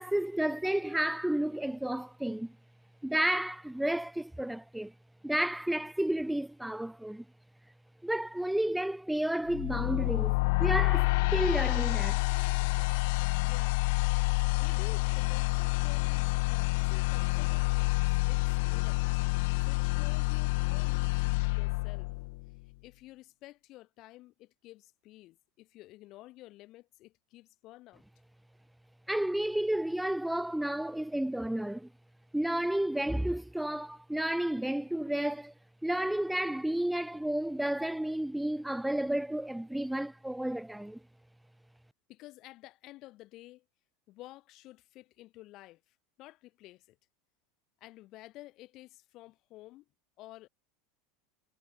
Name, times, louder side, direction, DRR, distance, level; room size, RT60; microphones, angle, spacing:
voice 1, 0.0-2.5 3.0-4.9 5.2-7.2 8.0-10.3 10.6-12.2 29.1-31.9 32.3-35.5 35.8-41.0, right 1 dB, ahead, 0.5 m, -31 dB
sound 1, 9.5-22.6, left 26 dB, 65° left, 0.9 m, -28 dB
voice 2, 13.4-13.8 14.6-19.0 19.6-22.1 22.8-28.0 42.1-43.6 44.1-47.0 47.8-49.9 50.2-50.5, left 17 dB, 40° left, 4.0 m, -52 dB
supercardioid pair, 150°, 0 cm